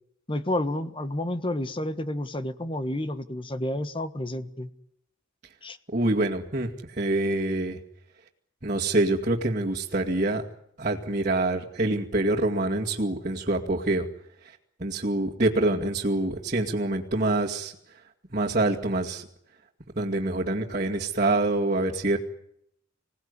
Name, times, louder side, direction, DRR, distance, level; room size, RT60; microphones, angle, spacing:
voice 1, 0.3-4.7 5.6-5.8, left 1 dB, 25° left, 11 dB, 1.4 m, -30 dB
voice 2, 5.9-7.8 8.6-10.4 10.8-14.1 14.8-17.7 18.3-19.2 20.0-22.2, right 2 dB, 40° right, -5 dB, 2.3 m, -26 dB
26.5 x 18.5 x 9.8 m, 0.75 s
head